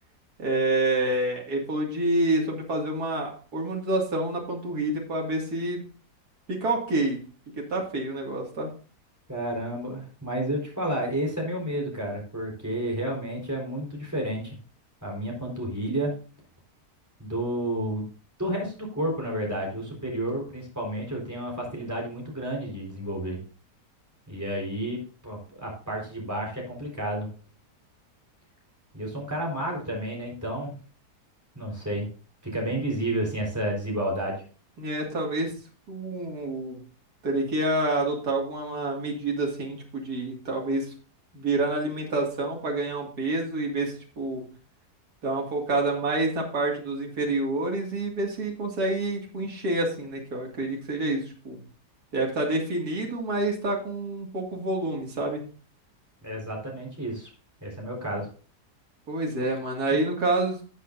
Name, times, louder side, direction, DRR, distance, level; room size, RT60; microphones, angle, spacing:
voice 1, 0.4-5.8 6.5-7.2 7.6-8.7 34.8-35.5 35.9-36.8 37.2-40.9 41.3-44.4 45.2-51.6 52.1-55.4 59.1-60.6, right 2 dB, 65° right, 0 dB, 2.8 m, -28 dB
voice 2, 9.3-14.6 15.0-16.1 17.2-18.1 18.4-23.4 24.3-27.3 28.9-30.7 31.5-32.1 32.4-34.4 56.2-57.3 57.6-58.3, right 1 dB, 10° right, -2 dB, 4.3 m, -31 dB
13.5 x 8.0 x 2.6 m, 0.38 s
omnidirectional pair, 1.8 m